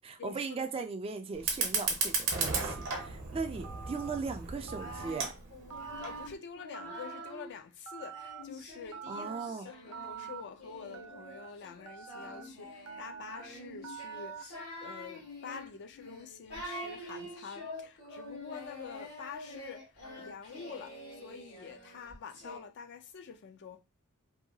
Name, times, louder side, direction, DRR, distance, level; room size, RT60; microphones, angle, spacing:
voice 1, 0.0-5.3 9.1-9.7, right 4 dB, 25° right, 0.3 m, -38 dB
Fire, 1.3-6.3, right 4 dB, 60° right, 0.8 m, -35 dB
Telephone, 2.6-3.1 3.6-4.2 4.7-5.3 5.7-6.3 6.7-7.3 7.9-8.4 8.9-9.5 9.9-10.4 10.9-11.5 11.9-12.4 12.9-13.4 13.8-14.4, right 7 dB, 90° right, 0.5 m, -45 dB
Singing, 4.5-7.5 8.1-22.6, left 1 dB, 75° left, 1.1 m, -46 dB
voice 2, 5.7-23.8, left 6 dB, 50° left, 0.4 m, -47 dB
2.7 x 2.2 x 2.7 m
head